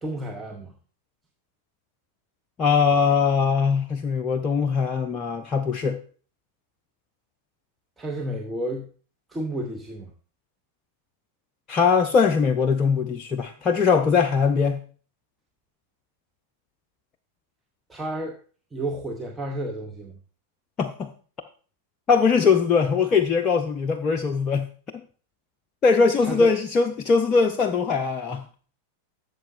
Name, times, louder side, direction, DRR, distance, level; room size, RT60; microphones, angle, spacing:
voice 1, 0.0-0.7 8.0-8.9 9.3-10.1 17.9-18.4 18.7-20.2 26.2-26.5, right 1 dB, 10° right, 1 dB, 0.9 m, -31 dB
voice 2, 2.6-6.0 11.7-14.8 20.8-21.1 22.1-24.7 24.9-25.0 25.8-28.4, left 5 dB, 25° left, 5 dB, 0.6 m, -21 dB
12.5 x 6.8 x 2.6 m, 0.41 s
figure-of-eight pair, 90°, 0 cm